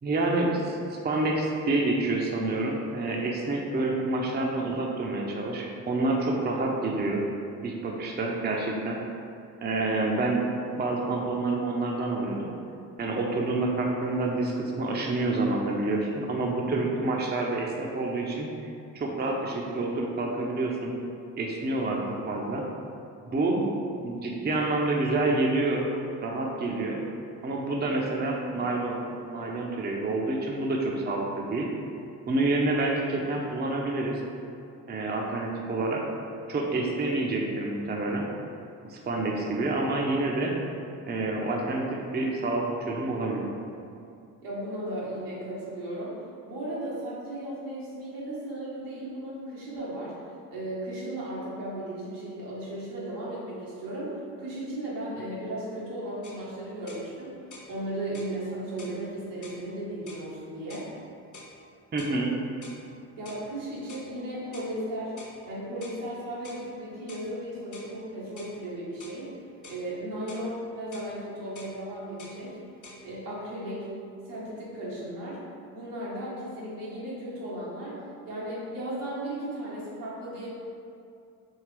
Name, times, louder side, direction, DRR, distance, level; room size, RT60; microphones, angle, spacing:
voice 1, 0.0-7.2 7.6-9.0 9.6-10.4 10.7-12.5 13.0-18.5 18.9-21.0 21.4-22.0 22.3-22.6 23.3-23.6 24.0-25.9 26.2-27.0 27.4-29.0 29.2-31.7 32.3-34.2 34.9-36.0 36.5-38.2 38.9-40.5 41.1-43.4 61.9-62.3, right 2 dB, 20° right, -1 dB, 0.6 m, -28 dB
voice 2, 44.4-46.2 46.5-50.1 50.5-57.4 57.7-60.9 63.2-65.1 65.4-69.3 69.7-72.6 73.0-73.9 74.2-75.4 75.7-80.5, right 1 dB, 80° right, -7 dB, 1.4 m, -36 dB
sound 1, 56.2-56.4 56.9-57.1 57.5-57.7 58.1-58.4 58.8-59.0 59.4-59.6 60.1-60.3 60.7-60.9 61.3-61.6 62.0-62.2 62.6-62.8 63.3-63.5 63.9-64.1 64.5-64.7 65.2-65.4 65.8-66.0 66.4-66.7 67.1-67.3 67.7-67.9 68.4-68.6 69.0-69.2 69.6-69.9 70.3-70.5 70.9-71.1 71.6-71.8 72.2-72.4 72.8-73.0, left 2 dB, 40° left, 0.9 m, -47 dB
4.6 x 3.2 x 3.2 m, 2.5 s
hypercardioid pair, 50°, 47 cm